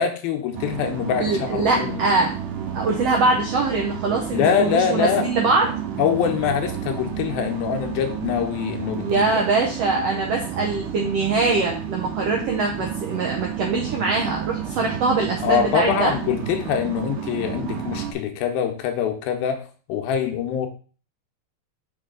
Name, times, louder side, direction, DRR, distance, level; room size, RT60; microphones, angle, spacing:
voice 1, 0.0-2.0 4.3-5.3 6.0-9.3 15.4-20.7, left 8 dB, 90° left, 5 dB, 2.7 m, -24 dB
sound 1, 0.5-18.1, right 8 dB, 70° right, 2.4 m, -31 dB
voice 2, 1.2-2.3 2.7-5.7 9.0-16.1, right 3 dB, 90° right, 0 dB, 1.4 m, -23 dB
6.2 x 4.7 x 3.8 m, 0.38 s
omnidirectional pair, 4.2 m